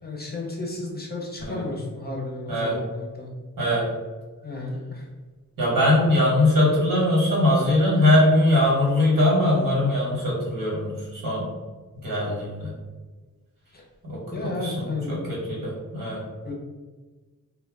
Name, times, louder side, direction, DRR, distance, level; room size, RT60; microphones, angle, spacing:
voice 1, 0.0-3.3 4.4-5.1 13.7-13.8 14.3-15.3 16.4-16.6, left 2 dB, 30° left, -1 dB, 0.6 m, -33 dB
voice 2, 5.6-11.5 12.0-12.7 14.0-16.2, left 1 dB, 85° right, -6 dB, 1.3 m, -21 dB
2.2 x 2.1 x 3.4 m, 1.3 s
wide cardioid pair, 110°, 33 cm